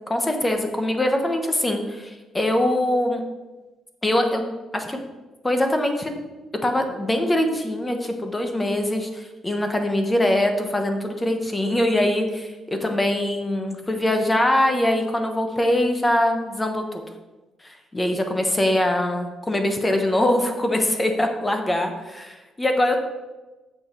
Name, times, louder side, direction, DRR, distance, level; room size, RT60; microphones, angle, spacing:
voice 1, 0.1-3.2 4.0-4.4 4.7-5.0 5.4-6.2 6.6-17.0 17.6-23.0, left 1 dB, 10° left, 5 dB, 0.9 m, -23 dB
8.4 x 6.8 x 4.5 m, 1.2 s
cardioid pair, 165°, 0 cm